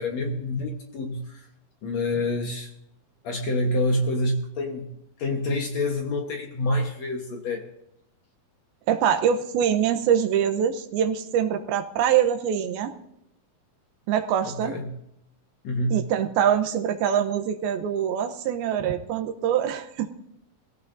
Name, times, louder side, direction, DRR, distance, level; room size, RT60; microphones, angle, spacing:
voice 1, 0.0-1.5 1.8-2.7 3.2-4.9 5.2-7.7 14.5-14.9 15.6-16.1, left 1 dB, 60° left, 3 dB, 2.0 m, -27 dB
voice 2, 8.9-12.9 14.1-14.7 15.9-20.1, right 9 dB, 80° right, 8 dB, 2.8 m, -24 dB
22.0 x 16.0 x 2.7 m, 0.80 s
omnidirectional pair, 4.4 m